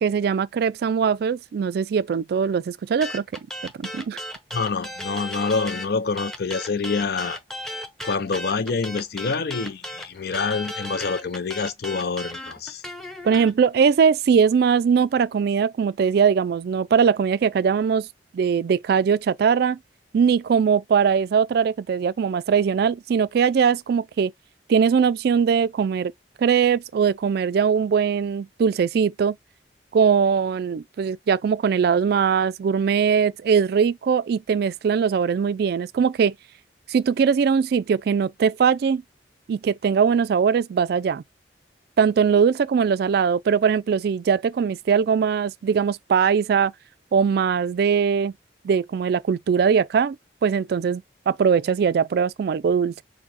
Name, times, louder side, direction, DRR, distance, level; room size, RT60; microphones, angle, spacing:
voice 1, 0.0-3.2 3.6-4.2 13.2-18.1 18.3-19.8 20.1-24.3 24.7-26.1 26.4-29.4 29.9-36.3 36.9-39.0 39.5-41.2 42.0-46.7 47.1-48.3 48.6-50.2 50.4-53.0, right 6 dB, 60° right, 0.3 m, -21 dB
sound 1, 3.0-5.9 6.2-13.5, left 1 dB, ahead, 0.7 m, -35 dB
voice 2, 4.5-7.4 8.0-12.8, left 4 dB, 60° left, 0.5 m, -26 dB
4.6 x 2.1 x 4.1 m
head